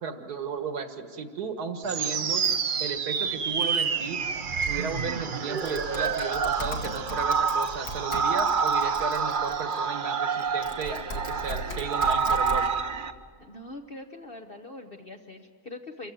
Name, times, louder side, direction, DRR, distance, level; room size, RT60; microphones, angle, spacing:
voice 1, 0.0-2.5 2.8-4.2 4.7-12.7, right 5 dB, 75° right, 7 dB, 2.0 m, -34 dB
sound 1, 1.8-13.1, right 5 dB, 45° right, 0.7 m, -28 dB
Typing, 5.6-9.8 10.4-12.6, equal, 65° left, 2.4 m, -38 dB
voice 2, 13.4-16.1, left 2 dB, 40° left, 3 dB, 1.1 m, -42 dB
27.0 x 15.5 x 9.1 m, 2.1 s
omnidirectional pair, 1.7 m